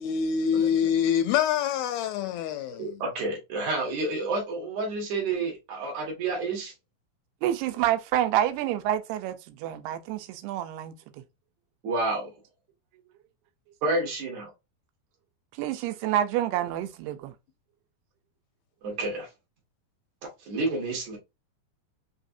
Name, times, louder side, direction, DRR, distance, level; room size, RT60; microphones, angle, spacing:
voice 1, 0.0-2.9, left 8 dB, 80° left, 2.2 m, -25 dB
voice 2, 2.8-6.7 11.8-12.3 13.8-14.5 18.8-19.3 20.4-21.2, right 2 dB, 55° right, 2.6 m, -29 dB
voice 3, 7.4-11.0 15.6-17.3, right 12 dB, 90° right, 2.7 m, -28 dB
6.0 x 3.2 x 2.6 m
omnidirectional pair, 4.5 m